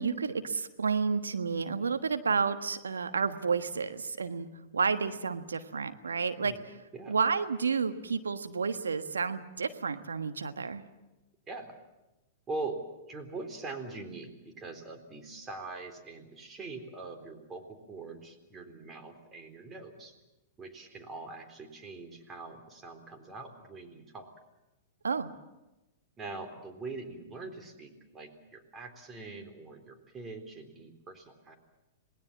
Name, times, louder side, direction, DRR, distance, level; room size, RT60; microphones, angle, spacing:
voice 1, 0.0-4.5 4.7-6.7 7.1-10.8 25.0-25.3, right 5 dB, 85° right, 9 dB, 1.4 m, -31 dB
voice 2, 11.5-11.8 12.5-12.8 13.1-20.1 20.6-24.3 26.2-31.6, right 3 dB, 20° right, 5 dB, 3.8 m, -43 dB
27.5 x 19.0 x 7.3 m, 1.0 s
hypercardioid pair, 110°, 0 cm